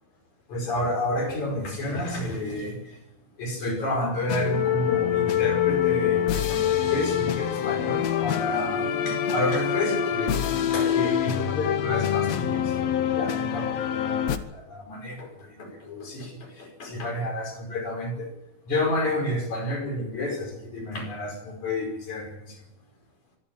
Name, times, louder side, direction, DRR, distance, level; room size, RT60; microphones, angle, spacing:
voice 1, 0.5-3.0 3.4-10.3 10.7-12.8 13.1-13.7 14.0-14.2 14.5-15.3 15.6-18.3 18.7-22.6, left 1 dB, 50° left, 2 dB, 6.4 m, -30 dB
sound 1, 4.3-14.4, left 9 dB, 70° left, 1.6 m, -25 dB
25.0 x 12.5 x 8.7 m, 0.92 s
omnidirectional pair, 4.4 m